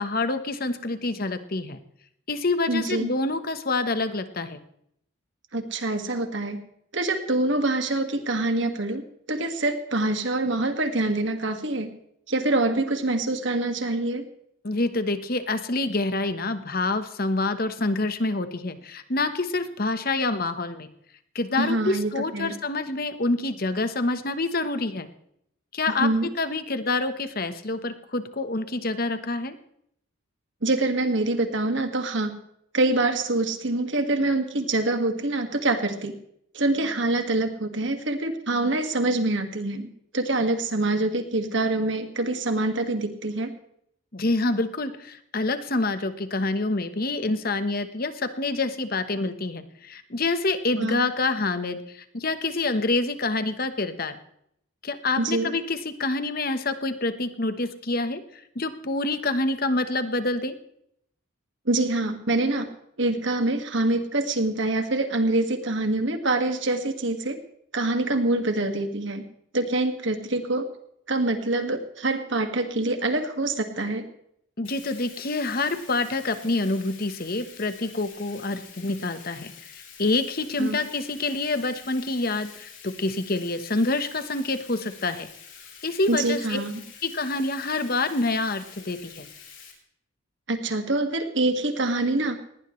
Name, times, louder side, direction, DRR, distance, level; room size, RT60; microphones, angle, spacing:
voice 1, 0.0-1.8 2.3-4.6 14.6-20.9 21.3-25.1 25.7-29.5 44.1-54.2 54.8-60.5 74.6-79.5 80.0-85.3 85.8-86.6 87.0-89.3, left 2 dB, 45° left, 10 dB, 1.2 m, -27 dB
voice 2, 2.7-3.1 5.5-6.6 6.9-9.0 9.3-11.9 12.3-14.2 21.6-22.5 26.0-26.3 30.6-32.3 32.7-36.1 36.5-39.9 40.1-43.5 50.8-51.0 55.2-55.5 61.7-62.7 63.0-67.4 67.7-69.2 69.5-70.7 71.1-74.1 80.6-80.8 86.1-86.7 90.5-92.4, right 2 dB, 60° right, 6 dB, 2.0 m, -25 dB
Bathtub (filling or washing), 74.6-89.7, left 7 dB, 60° left, 4.2 m, -47 dB
19.5 x 18.0 x 3.2 m, 0.72 s
head